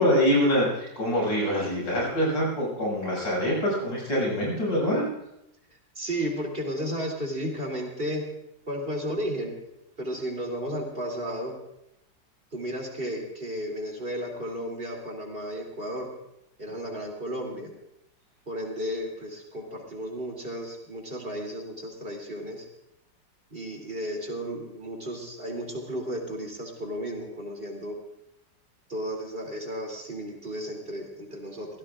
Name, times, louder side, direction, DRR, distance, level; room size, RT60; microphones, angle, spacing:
voice 1, 0.0-5.1, equal, 85° left, -4 dB, 7.8 m, -25 dB
voice 2, 5.9-8.2 8.7-9.5 10.0-11.5 12.5-16.1 16.6-17.7 18.5-22.6 23.5-27.9 28.9-31.7, equal, 30° right, 1 dB, 3.2 m, -33 dB
24.0 x 16.5 x 2.5 m, 0.83 s
omnidirectional pair, 2.0 m